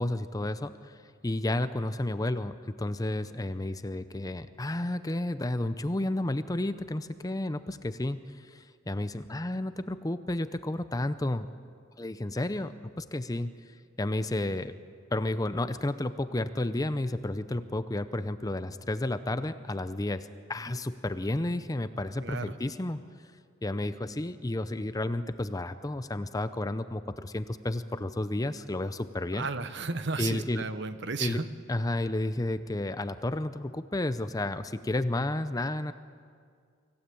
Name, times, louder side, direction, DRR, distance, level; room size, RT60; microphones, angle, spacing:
voice 1, 0.0-11.5 12.0-13.5 14.0-14.7 15.1-23.0 23.6-29.5 30.2-30.6 31.2-31.4 31.7-35.9, left 1 dB, 15° left, 12 dB, 0.6 m, -31 dB
voice 2, 22.2-22.5 29.3-31.5, right 4 dB, 60° right, 11 dB, 1.1 m, -33 dB
25.0 x 16.0 x 8.5 m, 2.2 s
head